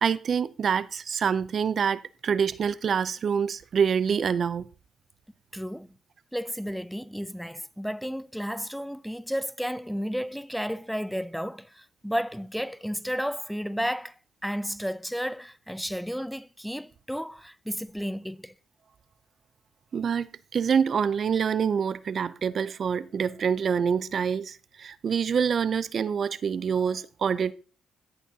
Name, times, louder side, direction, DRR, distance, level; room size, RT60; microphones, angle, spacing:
voice 1, 0.0-4.7 19.9-27.5, right 7 dB, 55° right, 0.4 m, -26 dB
voice 2, 5.5-5.9 6.3-14.1 14.4-18.5, equal, ahead, 0.5 m, -32 dB
15.0 x 6.1 x 2.8 m
supercardioid pair, 65°, 0 cm